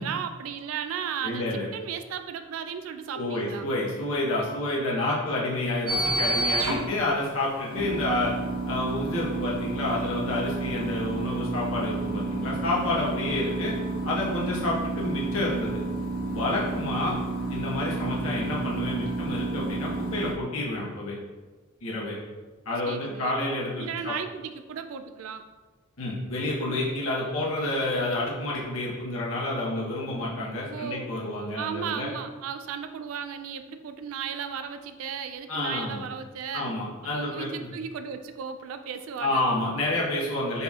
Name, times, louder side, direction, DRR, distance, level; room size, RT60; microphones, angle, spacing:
voice 1, 0.0-1.5 1.7-3.6 22.8-23.4 23.8-25.4 30.7-31.1 31.6-36.8 37.1-39.4, right 7 dB, 75° right, 8 dB, 0.3 m, -35 dB
voice 2, 1.2-1.7 3.1-8.3 8.7-13.7 14.0-15.8 16.3-17.2 17.5-21.1 21.8-22.1 22.7-24.1 26.0-32.1 35.5-36.0 36.5-37.7 39.2-40.6, left 2 dB, 80° left, -5 dB, 1.0 m, -29 dB
sound 1, 5.9-20.3, right 2 dB, 90° right, 1.0 m, -30 dB
5.4 x 4.1 x 2.4 m, 1.3 s
head